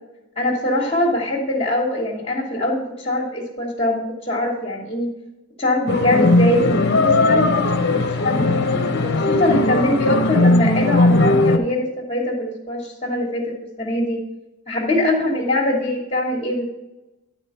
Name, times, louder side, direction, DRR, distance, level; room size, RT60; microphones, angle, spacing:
voice 1, 0.4-5.1 5.6-8.6 9.0-14.2 14.7-16.7, left 1 dB, 25° left, -5 dB, 1.4 m, -23 dB
sound 1, 5.9-11.6, left 2 dB, 50° left, 0.8 m, -18 dB
11.0 x 4.4 x 5.5 m, 0.96 s
head